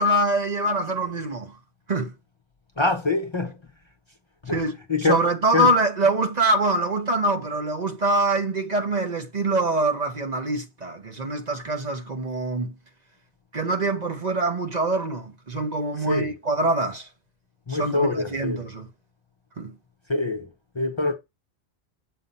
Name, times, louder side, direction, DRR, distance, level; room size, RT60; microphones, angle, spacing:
voice 1, 0.0-1.6 1.9-2.1 4.5-12.7 13.5-17.1 17.7-18.9 19.6-19.7, right 2 dB, 40° right, 0.9 m, -24 dB
voice 2, 2.8-3.6 4.4-5.2 5.5-5.7 16.0-16.3 17.7-18.6 20.1-20.5 20.7-21.1, left 3 dB, 30° left, 0.7 m, -25 dB
7.6 x 2.7 x 5.3 m
omnidirectional pair, 1.1 m